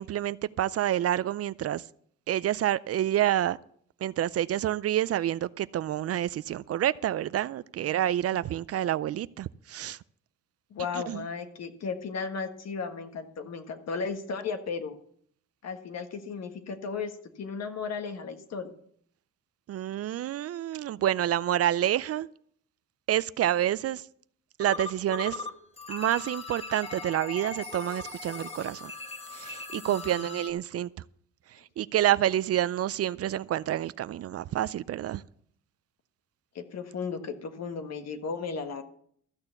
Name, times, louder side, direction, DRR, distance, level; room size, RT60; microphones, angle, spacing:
voice 1, 0.0-1.8 2.3-3.6 4.0-10.0 11.1-11.2 19.7-22.3 23.1-24.0 24.6-25.4 25.9-28.9 29.3-30.9 31.8-35.2, right 12 dB, 55° right, 0.4 m, -28 dB
voice 2, 10.7-15.0 15.6-18.7 29.7-30.4 36.5-38.8, left 5 dB, 60° left, 1.6 m, -35 dB
sound 1, 24.6-25.5 25.8-30.5, left 4 dB, 20° left, 1.7 m, -39 dB
14.0 x 6.6 x 7.0 m
cardioid pair, 90°, 30 cm